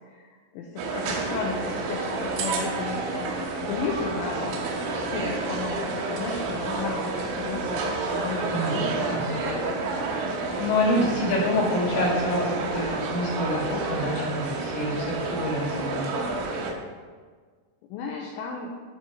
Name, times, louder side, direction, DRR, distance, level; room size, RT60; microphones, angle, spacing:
voice 1, 0.0-4.7 4.9-9.9 17.9-18.8, left 4 dB, 80° left, 0 dB, 2.9 m, -34 dB
sound 1, 0.8-16.7, right 3 dB, 80° right, 3.5 m, -30 dB
voice 2, 8.5-9.3 10.6-16.1, left 1 dB, 50° left, -6 dB, 3.6 m, -27 dB
11.5 x 4.1 x 6.5 m, 1.5 s
omnidirectional pair, 5.5 m